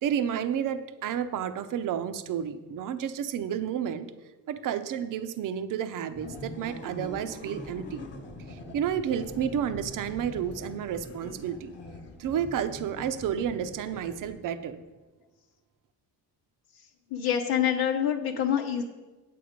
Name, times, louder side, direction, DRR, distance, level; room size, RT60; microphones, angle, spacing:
voice 1, 0.0-4.1 4.5-8.0 8.5-11.7 12.2-14.8, right 9 dB, 55° right, 11 dB, 0.7 m, -31 dB
sound 1, 6.1-14.7, left 1 dB, 30° left, 1.2 m, -43 dB
voice 2, 17.1-18.8, left 9 dB, 75° left, -1 dB, 1.0 m, -26 dB
8.6 x 8.3 x 5.1 m, 1.2 s
cardioid pair, 140°, 38 cm